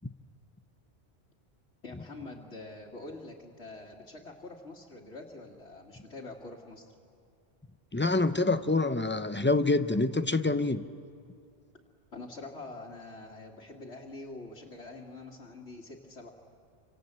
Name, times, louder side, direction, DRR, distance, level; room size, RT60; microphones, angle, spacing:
voice 1, 1.8-6.9 11.7-11.8 12.1-16.3, left 2 dB, 85° left, -4 dB, 2.3 m, -45 dB
voice 2, 7.9-10.9, left 2 dB, 15° left, 11 dB, 0.6 m, -26 dB
28.0 x 26.0 x 8.0 m, 2.4 s
omnidirectional pair, 1.1 m